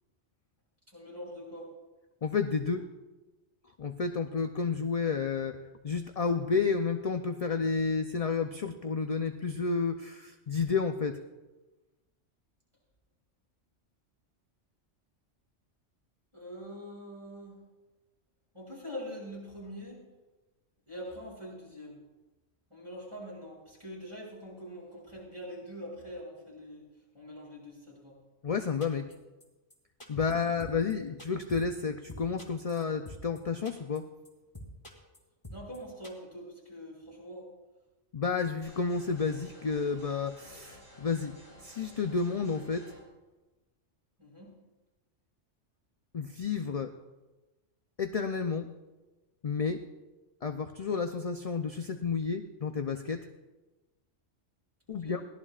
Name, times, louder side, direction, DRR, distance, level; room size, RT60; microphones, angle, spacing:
voice 1, 0.9-1.7 16.3-17.6 18.5-20.0 20.9-22.0 22.7-26.8 27.1-28.2 30.2-30.7 35.5-37.5 44.2-44.5 54.9-55.2, equal, 25° right, -5 dB, 6.7 m, -44 dB
voice 2, 2.2-2.9 3.8-5.6 5.8-11.2 28.4-29.1 30.1-34.0 38.1-41.4 41.6-42.9 46.1-46.9 48.0-48.7 49.4-49.8 50.4-53.3 54.9-55.2, left 5 dB, 45° left, 6 dB, 0.5 m, -31 dB
sound 1, 28.8-29.1 29.4-29.5 29.7-29.8 30.0-30.3 30.6-30.9 31.2-31.8 32.1-33.4 33.6-34.0 34.2-34.3 34.5-35.2 35.4-35.8 36.0-36.1, equal, 25° left, 2.8 m, -45 dB
sound 2, 38.6-43.0, equal, 75° right, 6.9 m, -54 dB
22.5 x 17.0 x 2.5 m, 1.1 s
omnidirectional pair, 1.3 m